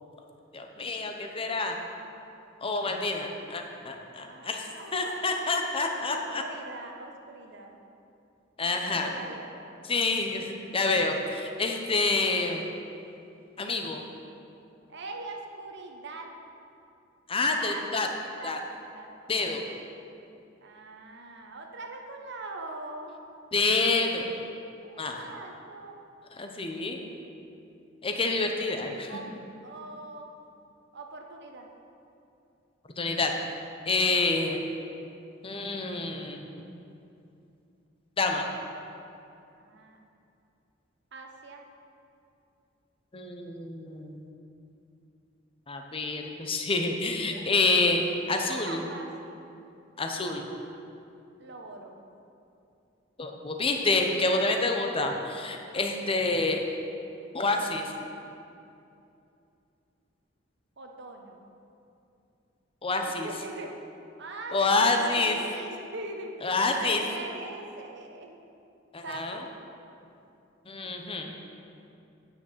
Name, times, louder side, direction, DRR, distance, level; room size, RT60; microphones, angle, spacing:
voice 1, 0.5-1.8 2.6-6.4 8.6-9.1 9.9-12.6 13.6-14.0 17.3-18.1 18.4-18.6 19.3-19.6 23.5-24.2 25.0-25.2 26.4-27.0 28.0-29.1 33.0-33.3 33.9-34.6 35.4-36.4 38.2-38.5 43.1-44.3 45.7-48.8 50.0-50.5 53.2-56.6 57.3-57.8 62.8-63.3 64.5-65.4 66.4-67.0 68.9-69.4 70.7-71.3, left 3 dB, 30° left, 3 dB, 0.9 m, -28 dB
voice 2, 4.1-5.2 6.1-7.8 8.6-9.8 14.9-16.3 17.5-17.8 18.3-18.6 18.9-19.5 20.6-23.2 24.8-26.0 28.5-28.6 29.1-30.3 30.9-31.7 34.0-34.3 39.6-40.0 41.1-41.6 47.2-47.4 48.3-49.5 51.4-52.0 60.8-61.4 63.0-63.7 64.2-66.4 66.8-68.4 69.0-69.5, right 2 dB, 60° right, 3 dB, 1.1 m, -42 dB
9.1 x 6.3 x 7.4 m, 2.7 s
head